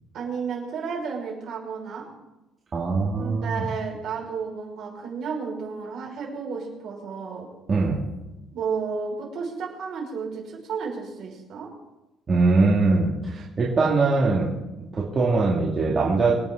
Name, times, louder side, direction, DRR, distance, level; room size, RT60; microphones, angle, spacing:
voice 1, 0.1-2.1 3.2-7.5 8.5-11.7, right 5 dB, 50° right, -2 dB, 5.6 m, -32 dB
voice 2, 2.7-3.7 7.7-8.0 12.3-14.5 14.8-16.4, right 3 dB, 25° right, -6 dB, 2.5 m, -22 dB
26.0 x 9.1 x 3.9 m, 1.0 s
cardioid pair, 155°, 0 cm